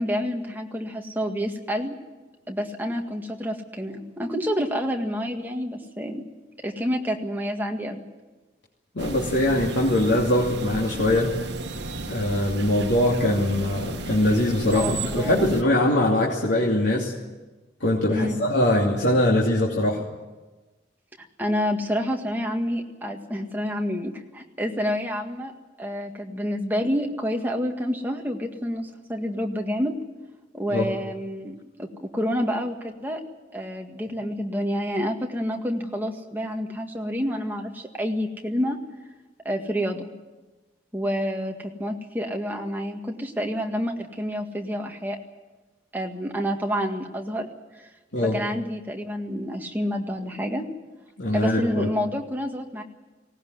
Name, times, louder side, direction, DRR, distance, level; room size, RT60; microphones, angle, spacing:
voice 1, 0.0-2.0 2.5-6.2 6.6-8.0 14.7-15.5 18.1-18.4 21.4-25.5 25.8-30.0 30.5-33.2 33.5-38.8 39.5-40.1 40.9-45.2 45.9-47.5 47.8-47.9 48.2-50.7 51.3-52.8, equal, 10° right, 2 dB, 1.9 m, -28 dB
voice 2, 8.9-11.4 12.1-17.1 17.8-20.0 30.7-30.9 48.1-48.4 51.2-51.9, left 1 dB, 80° left, -3 dB, 2.8 m, -22 dB
sound 1, 9.0-15.6, right 2 dB, 75° right, 1.5 m, -34 dB
19.0 x 18.0 x 9.6 m, 1.2 s
head